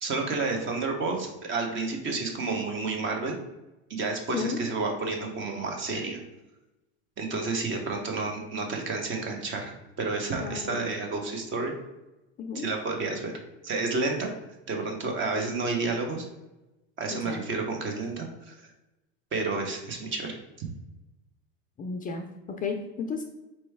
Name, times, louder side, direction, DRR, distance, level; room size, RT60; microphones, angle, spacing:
voice 1, 0.0-3.3 3.9-6.2 7.2-11.7 12.5-13.3 13.6-14.3 14.7-16.2 17.0-18.5 19.3-20.7, right 3 dB, 40° right, 2 dB, 1.0 m, -30 dB
voice 2, 4.3-4.6 10.4-10.9 12.4-12.7 17.1-17.5 21.8-23.2, left 5 dB, 25° left, 4 dB, 0.5 m, -33 dB
4.4 x 3.0 x 3.4 m, 0.99 s
hypercardioid pair, 100°, 31 cm